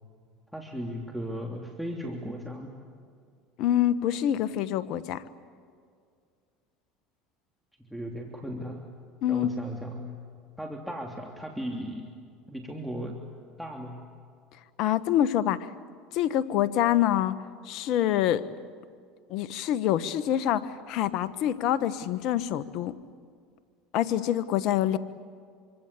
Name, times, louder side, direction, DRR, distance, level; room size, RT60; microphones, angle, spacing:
voice 1, 0.5-2.7 7.8-8.9 9.3-10.1 10.6-12.1 12.5-13.2 13.6-14.0, equal, ahead, 0 dB, 3.1 m, -36 dB
voice 2, 3.6-5.2 9.2-9.5 14.8-15.7 16.1-17.4 17.6-18.4 19.3-22.9 23.9-25.0, left 11 dB, 60° left, 13 dB, 1.4 m, -26 dB
27.0 x 25.0 x 8.4 m, 2.2 s
supercardioid pair, 90°, 0 cm